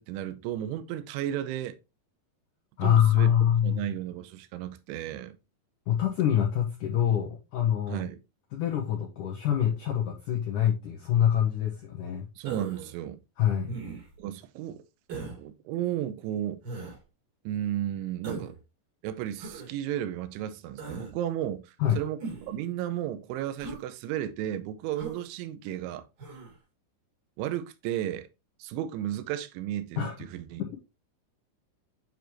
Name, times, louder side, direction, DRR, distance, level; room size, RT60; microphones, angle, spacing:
voice 1, 0.0-1.8 2.8-5.4 7.9-8.2 12.4-13.2 14.2-14.8 15.4-16.6 17.5-18.6 19.0-26.1 27.4-28.3 28.6-30.6, right 12 dB, 85° right, 3.1 m, -34 dB
voice 2, 2.8-3.8 5.9-8.1 8.5-12.3 13.4-13.7 21.8-22.0 30.0-30.2 30.6-30.8, left 10 dB, 90° left, 1.8 m, -25 dB
Human voice, 12.4-12.9 13.7-14.2 15.1-15.4 16.6-17.0 18.2-18.6 19.4-19.7 20.8-21.1 22.2-22.6 23.6-23.8 24.9-25.2 26.2-26.5, right 4 dB, 50° right, 3.3 m, -39 dB
8.9 x 4.9 x 3.0 m
omnidirectional pair, 5.4 m